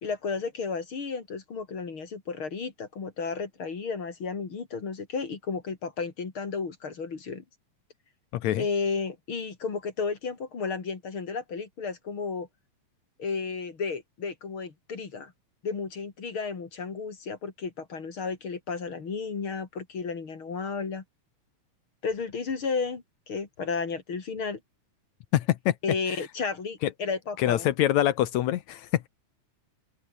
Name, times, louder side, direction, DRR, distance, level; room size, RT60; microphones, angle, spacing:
voice 1, 0.0-7.4 8.6-12.5 13.2-15.3 15.6-21.0 22.0-24.6 25.8-27.7, left 5 dB, 40° left, 3.5 m, -33 dB
voice 2, 8.3-8.7 25.3-25.7 26.8-26.9 27.4-29.1, left 13 dB, 70° left, 2.1 m, -25 dB
open air
omnidirectional pair, 3.6 m